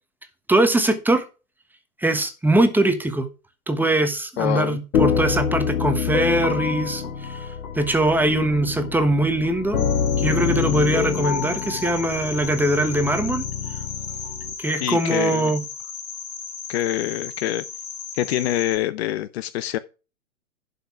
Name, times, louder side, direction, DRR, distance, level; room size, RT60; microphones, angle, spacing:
voice 1, 0.5-1.2 2.0-3.3 3.7-7.5 7.7-9.8 10.2-13.4 14.6-15.6, right 1 dB, 5° right, 1.2 m, -21 dB
voice 2, 4.4-4.8 14.8-15.5 16.7-17.6 18.1-19.8, left 13 dB, 45° left, 0.7 m, -25 dB
sound 1, 4.9-14.5, left 6 dB, 70° left, 1.9 m, -26 dB
sound 2, 9.8-18.8, left 7 dB, 30° left, 3.8 m, -36 dB
11.5 x 5.5 x 4.6 m
hypercardioid pair, 110°, 44 cm